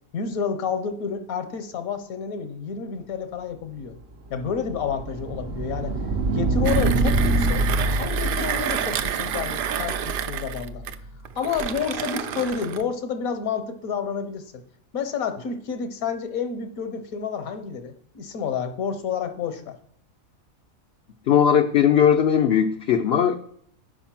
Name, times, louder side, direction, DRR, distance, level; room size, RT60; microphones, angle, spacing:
voice 1, 0.1-3.9 4.3-6.0 6.3-7.7 8.0-10.8 11.4-14.6 14.9-19.8, left 6 dB, 75° left, 8 dB, 1.4 m, -29 dB
sound 1, 4.0-10.9, right 2 dB, 45° right, 0.8 m, -26 dB
Mechanisms, 6.6-12.9, right 9 dB, 75° right, 0.5 m, -30 dB
voice 2, 21.3-23.4, left 8 dB, 60° left, 5 dB, 0.7 m, -18 dB
7.0 x 5.2 x 5.8 m, 0.67 s
omnidirectional pair, 1.5 m